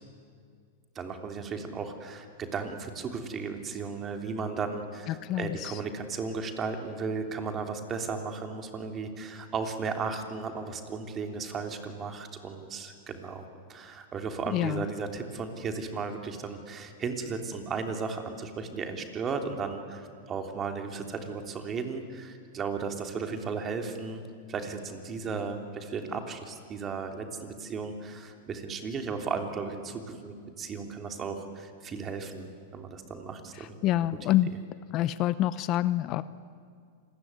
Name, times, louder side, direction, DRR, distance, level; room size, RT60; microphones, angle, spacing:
voice 1, 0.9-13.4 13.7-24.2 24.5-33.8, right 5 dB, 25° right, 5 dB, 3.3 m, -35 dB
voice 2, 5.1-5.8 14.5-14.8 33.6-34.5 34.9-36.2, left 14 dB, 40° left, 15 dB, 0.7 m, -27 dB
27.5 x 21.0 x 9.7 m, 2.2 s
hypercardioid pair, 130°, 0 cm